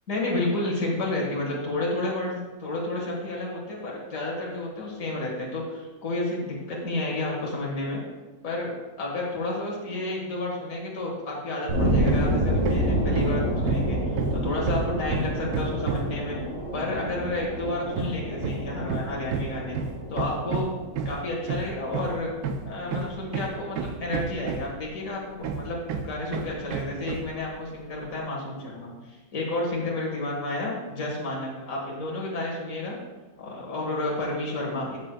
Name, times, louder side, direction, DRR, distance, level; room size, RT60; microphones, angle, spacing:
voice 1, 0.1-8.0 8.4-8.7 9.0-16.4 16.7-19.8 20.1-20.7 21.1-22.3 22.7-25.8 26.0-33.0 33.4-35.0, left 2 dB, 65° left, -2 dB, 2.0 m, -31 dB
sound 1, 11.7-22.5, equal, 55° right, 2.0 m, -28 dB
Hammer, 12.0-12.3 12.6-16.2 17.9-24.9 25.4-27.4, right 5 dB, 90° right, 1.2 m, -31 dB
12.5 x 6.3 x 2.3 m, 1.2 s
omnidirectional pair, 1.6 m